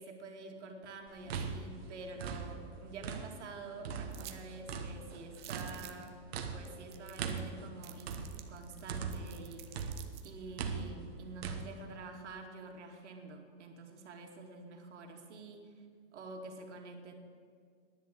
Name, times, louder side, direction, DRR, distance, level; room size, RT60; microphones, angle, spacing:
voice 1, 0.0-6.2 6.5-8.2 8.5-10.0 10.2-15.7 16.1-17.1, right 3 dB, 75° right, 3 dB, 2.5 m, -48 dB
sound 1, 1.1-3.5 3.8-9.4 9.7-11.6, right 6 dB, 60° right, 1.4 m, -40 dB
sound 2, 4.1-4.4 4.7-4.8 5.3-6.1 6.6-6.7 6.9-7.5 7.8-10.3, right 14 dB, 25° right, 0.6 m, -51 dB
10.5 x 10.5 x 8.5 m, 2.1 s
hypercardioid pair, 165°, 35 cm